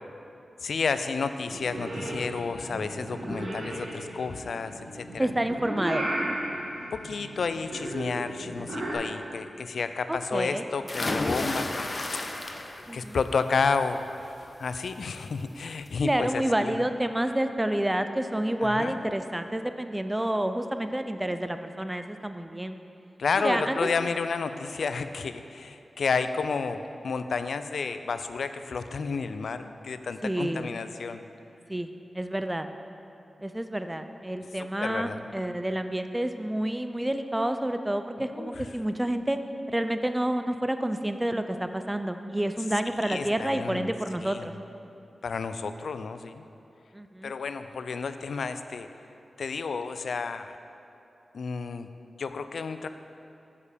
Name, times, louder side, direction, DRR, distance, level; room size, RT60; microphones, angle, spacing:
voice 1, 0.6-5.3 6.9-12.7 12.9-16.9 18.6-19.0 23.2-31.2 34.5-35.3 38.2-38.6 43.0-43.9 44.2-44.5 45.2-46.5 47.2-48.9 49.4-50.6 51.3-51.9 52.2-52.9, left 5 dB, 80° left, 10 dB, 0.3 m, -31 dB
Purr / Meow, 1.5-8.9, right 1 dB, 70° right, 1.6 m, -35 dB
voice 2, 3.3-3.6 5.2-6.1 10.1-10.6 12.9-13.2 16.0-22.8 23.4-23.9 30.2-30.7 31.7-31.9 32.1-32.7 33.4-39.4 39.7-44.5 46.9-47.3, right 1 dB, 15° right, 8 dB, 0.4 m, -29 dB
sound 1, 10.9-13.0 13.4-13.8 15.2-15.3 15.7-15.8, left 2 dB, 40° left, 0.6 m, -31 dB
7.1 x 6.6 x 5.1 m, 2.8 s
cardioid pair, 65°, 0 cm